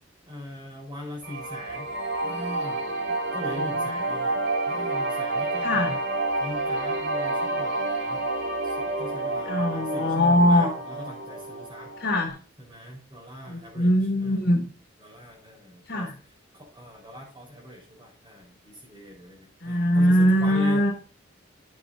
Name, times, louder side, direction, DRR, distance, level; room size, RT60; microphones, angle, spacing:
voice 1, 0.2-1.9 2.2-2.9 3.3-4.4 4.7-5.8 6.4-8.3 8.6-11.9 12.7-13.9 14.2-14.4 15.0-16.1 16.5-20.8, left 1 dB, 25° right, -6 dB, 4.5 m, -40 dB
sound 1, 1.2-12.3, right 2 dB, 60° right, 3.3 m, -29 dB
voice 2, 3.5-4.0 5.6-6.0 9.4-10.7 12.0-12.4 13.5-14.7 15.9-16.1 19.6-20.9, equal, 60° left, 0 dB, 3.9 m, -22 dB
14.0 x 8.1 x 2.7 m, 0.36 s
head